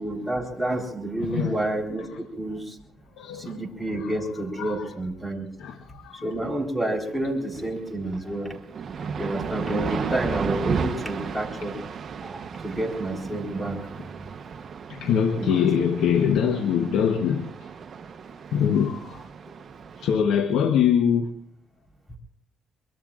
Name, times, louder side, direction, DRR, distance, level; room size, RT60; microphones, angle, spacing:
voice 1, 0.0-2.1 2.4-2.8 3.4-5.5 6.2-8.5 9.2-11.7 12.2-14.0 15.4-15.7, right 1 dB, 5° left, 4.1 m, -29 dB
voice 2, 1.2-1.6 2.0-2.1 3.2-3.6 3.9-4.9 5.6-6.4 9.9-10.1 14.0-14.1 14.9-17.5 18.5-19.2 20.0-21.3, left 8 dB, 85° left, 1.1 m, -24 dB
sound 1, 7.1-7.2 7.5-20.2, right 6 dB, 50° right, 1.0 m, -34 dB
24.0 x 22.5 x 2.5 m
cardioid pair, 90°, 0 cm